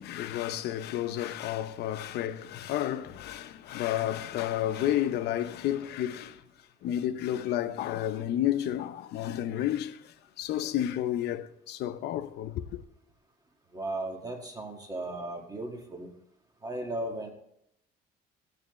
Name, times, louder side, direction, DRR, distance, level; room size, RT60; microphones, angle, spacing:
voice 1, 0.0-6.4 6.8-12.8, left 12 dB, 75° left, 0.7 m, -31 dB
voice 2, 13.7-16.1 16.6-17.3, right 1 dB, 20° right, 1.8 m, -36 dB
15.5 x 9.3 x 3.1 m
cardioid pair, 110°, 17 cm